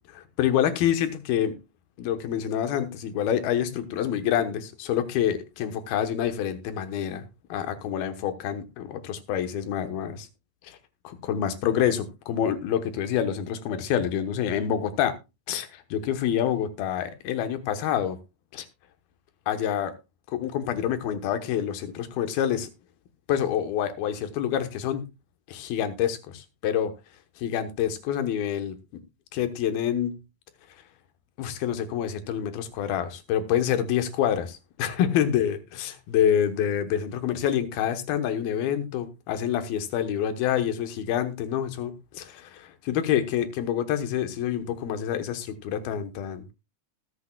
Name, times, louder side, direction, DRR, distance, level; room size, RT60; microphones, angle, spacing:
voice 1, 0.1-1.5 2.0-10.3 10.6-10.8 11.0-15.1 15.5-18.2 18.5-18.7 19.5-19.9 20.3-22.7 23.3-25.1 25.5-26.9 27.4-28.8 29.3-30.2 31.4-46.5, left 9 dB, 80° left, 10 dB, 3.0 m, -27 dB
20.0 x 8.4 x 2.3 m, 0.25 s
omnidirectional pair, 4.3 m